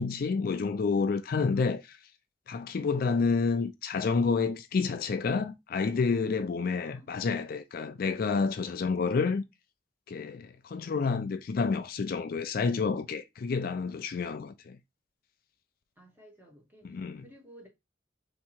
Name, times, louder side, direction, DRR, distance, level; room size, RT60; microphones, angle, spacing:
voice 1, 0.0-2.0 2.5-9.4 10.1-14.8 16.8-17.2, left 4 dB, 55° left, 0.4 m, -29 dB
voice 2, 16.0-17.7, equal, 10° right, 1.6 m, -54 dB
3.5 x 2.9 x 4.3 m
head